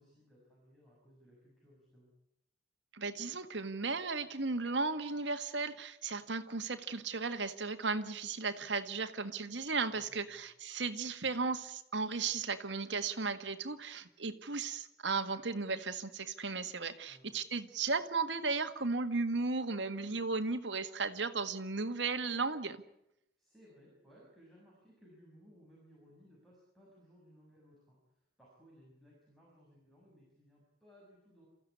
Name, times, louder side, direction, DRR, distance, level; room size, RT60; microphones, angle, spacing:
voice 1, 0.0-2.2 9.9-10.4 17.1-17.3 23.4-31.5, equal, ahead, -6 dB, 7.0 m, -62 dB
voice 2, 2.9-22.8, right 4 dB, 85° right, 8 dB, 1.8 m, -35 dB
28.0 x 15.0 x 9.7 m, 0.84 s
head